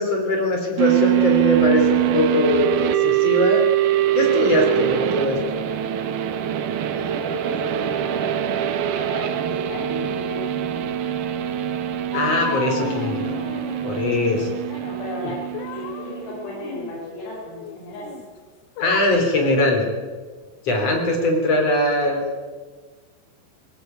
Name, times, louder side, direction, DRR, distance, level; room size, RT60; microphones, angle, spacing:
voice 1, 0.0-3.6 4.1-5.6 12.1-13.2 13.8-14.6 18.8-19.8 20.6-22.2, left 2 dB, 35° left, 2 dB, 4.6 m, -21 dB
sound 1, 0.8-16.5, right 12 dB, 85° right, 1.8 m, -23 dB
voice 2, 6.9-11.0 14.7-15.4 15.7-18.1, left 1 dB, 75° left, -6 dB, 9.1 m, -35 dB
sound 2, 12.1-14.6 15.3-18.3 18.8-19.0, left 8 dB, 90° left, 3.9 m, -33 dB
21.5 x 20.0 x 9.3 m, 1.4 s
omnidirectional pair, 5.4 m